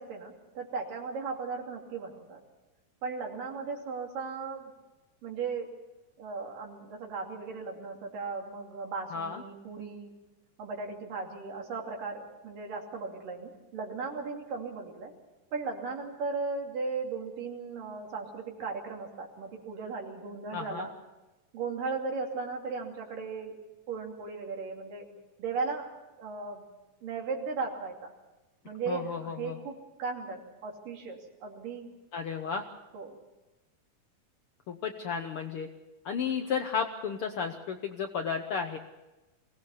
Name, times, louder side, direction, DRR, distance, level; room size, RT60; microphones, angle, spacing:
voice 1, 0.0-2.4 3.0-4.7 5.2-5.7 6.2-10.1 10.6-15.1 15.5-20.9 21.5-23.6 23.9-25.1 25.4-25.9 26.2-26.6 27.0-28.1 28.7-31.9 32.9-33.2, right 4 dB, 85° right, 1 dB, 4.5 m, -36 dB
voice 2, 9.1-9.4 20.5-20.9 28.9-29.6 32.1-32.6 34.7-35.7 36.0-38.8, left 6 dB, 70° left, 6 dB, 1.4 m, -33 dB
23.0 x 18.0 x 7.1 m, 1.1 s
omnidirectional pair, 3.8 m